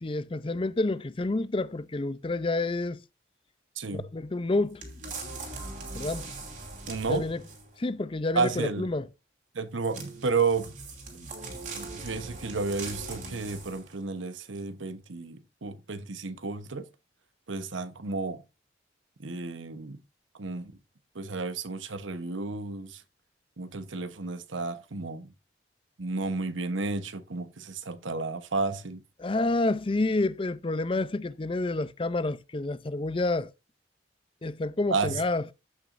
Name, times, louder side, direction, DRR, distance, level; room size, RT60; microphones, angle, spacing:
voice 1, 0.0-3.0 4.1-4.8 5.9-6.3 7.1-7.4 7.8-9.1 29.2-33.5 34.4-35.4, left 2 dB, 30° left, 0.5 m, -29 dB
voice 2, 3.8-4.1 6.9-7.2 8.3-8.9 9.5-10.7 11.7-16.9 17.5-18.4 19.2-20.0 20.4-20.7 21.1-23.0 23.6-25.3 26.0-29.0 34.9-35.2, right 4 dB, 85° right, 1.0 m, -32 dB
sound 1, 4.8-7.8 9.8-14.0 14.5-14.6, right 3 dB, 40° right, 2.8 m, -41 dB
14.5 x 6.1 x 2.6 m
head